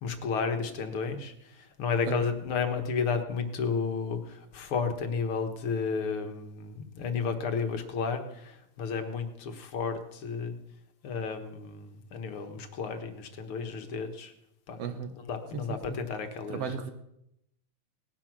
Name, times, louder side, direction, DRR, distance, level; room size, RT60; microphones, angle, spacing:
voice 1, 0.0-10.6 11.0-14.3 14.7-14.8 15.3-16.7, left 5 dB, 50° left, 7 dB, 1.9 m, -32 dB
voice 2, 14.8-15.1 15.5-16.0 16.5-16.9, right 6 dB, 60° right, 8 dB, 1.9 m, -35 dB
18.5 x 11.5 x 6.1 m, 0.81 s
omnidirectional pair, 3.6 m